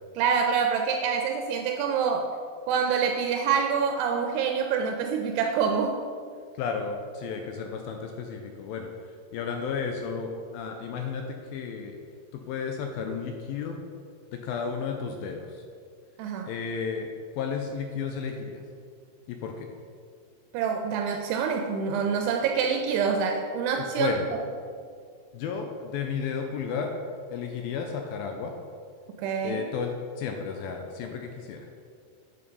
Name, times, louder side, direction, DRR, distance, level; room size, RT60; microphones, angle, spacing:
voice 1, 0.2-2.3 2.7-5.9 16.2-16.5 20.5-24.1 29.2-29.6, right 6 dB, 85° right, 4 dB, 2.7 m, -26 dB
voice 2, 6.5-12.0 12.3-13.8 14.3-15.6 16.4-18.6 19.3-19.7 23.8-24.3 25.3-26.9 27.3-28.5 29.4-31.7, left 6 dB, 85° left, 4 dB, 2.2 m, -33 dB
8.7 x 6.9 x 5.1 m, 2.2 s
omnidirectional pair, 4.7 m